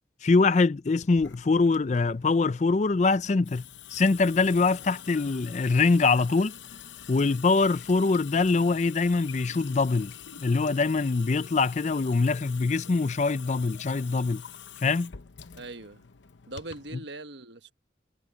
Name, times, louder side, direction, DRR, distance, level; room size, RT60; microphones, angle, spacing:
voice 1, 0.2-3.6 3.9-6.5 7.1-10.1 10.4-14.4 14.8-15.1, left 3 dB, 40° left, 0.4 m, -23 dB
Water tap faucet / Sink (filling or washing) / Drip, 1.0-17.0, left 8 dB, 85° left, 0.8 m, -46 dB
voice 2, 15.6-16.0 16.5-17.7, right 2 dB, 75° right, 1.4 m, -41 dB
head